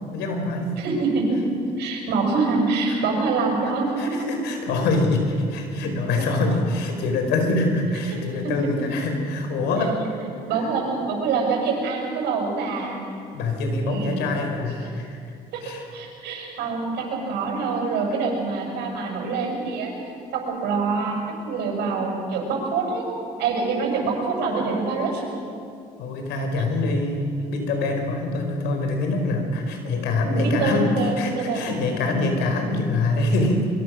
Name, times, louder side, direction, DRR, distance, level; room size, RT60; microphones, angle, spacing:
voice 1, 0.1-0.8 2.9-3.0 4.0-10.0 13.3-15.2 15.6-15.8 26.0-33.7, left 2 dB, 90° left, 4 dB, 4.5 m, -24 dB
voice 2, 0.8-1.4 1.8-4.4 6.3-6.4 8.4-8.9 9.7-10.1 10.5-13.1 13.8-14.3 15.5-15.6 15.9-19.9 20.3-23.1 23.4-25.2 26.6-26.7 29.8-29.9 30.4-31.7, right 4 dB, 85° right, 0 dB, 6.7 m, -25 dB
24.0 x 23.5 x 6.4 m, 2.4 s
cardioid pair, 110°, 17 cm